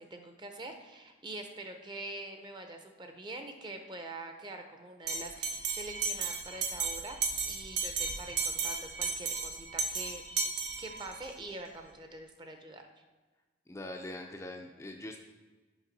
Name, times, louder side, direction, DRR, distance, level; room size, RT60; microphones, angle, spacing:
voice 1, 0.0-7.2 7.5-10.2 10.8-12.9, right 2 dB, 25° right, 5 dB, 0.6 m, -44 dB
Bell, 5.1-11.3, right 5 dB, 70° right, 0.8 m, -34 dB
voice 2, 13.7-15.2, left 1 dB, 15° left, 2 dB, 0.4 m, -42 dB
7.2 x 5.5 x 4.0 m, 1.3 s
head